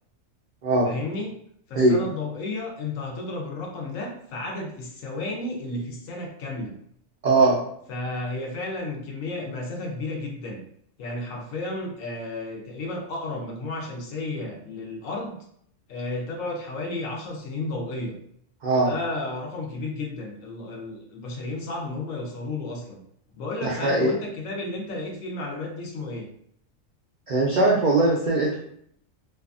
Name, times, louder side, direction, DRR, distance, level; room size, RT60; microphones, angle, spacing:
voice 1, 0.8-1.3 1.7-6.7 7.9-10.6 11.0-15.4 15.9-18.2 18.7-23.0 23.3-26.3, left 2 dB, 80° left, 0 dB, 1.0 m, -32 dB
voice 2, 7.2-7.6 18.6-18.9 23.6-24.1 27.3-28.6, right 2 dB, 90° right, -3 dB, 0.4 m, -20 dB
2.6 x 2.3 x 2.4 m, 0.68 s
omnidirectional pair, 1.4 m